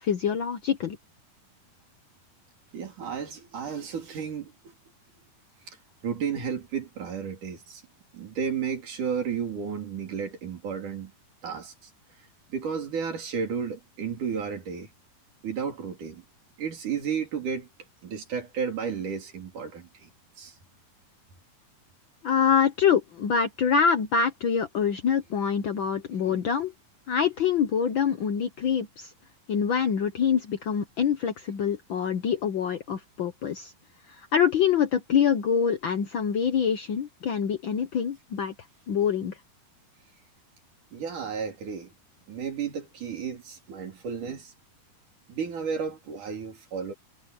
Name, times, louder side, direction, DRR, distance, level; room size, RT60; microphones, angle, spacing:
voice 1, 0.0-1.0 22.2-26.7 27.1-29.1 29.5-33.7 34.1-38.5 38.9-39.4, left 7 dB, 80° left, 1.0 m, -25 dB
voice 2, 2.7-4.7 5.7-5.8 6.0-7.8 8.1-11.1 11.4-11.9 12.5-14.9 15.4-16.2 16.6-17.7 18.0-20.1 20.4-20.6 26.2-26.5 40.9-41.9 42.3-44.5 45.3-46.9, right 6 dB, 70° right, 5.0 m, -33 dB
omnidirectional pair, 3.8 m